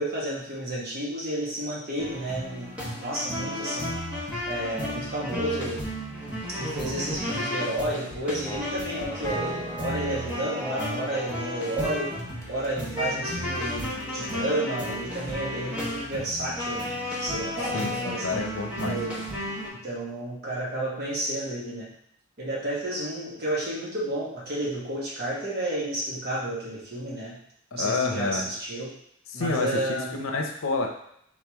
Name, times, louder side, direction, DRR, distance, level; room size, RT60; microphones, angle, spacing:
voice 1, 0.0-3.9 4.5-5.9 6.5-12.1 12.5-18.3 18.8-19.2 19.8-21.9 22.4-27.4 27.7-28.9 29.3-30.2, right 1 dB, 50° right, -5 dB, 1.3 m, -31 dB
sound 1, 2.0-19.7, left 1 dB, 5° right, 1.0 m, -33 dB
sound 2, 8.4-13.0 13.3-14.3, right 1 dB, 15° left, 0.5 m, -40 dB
voice 2, 17.6-19.0 27.7-28.5 29.3-30.9, left 3 dB, 90° left, 3 dB, 0.6 m, -29 dB
3.7 x 3.1 x 3.5 m, 0.72 s
head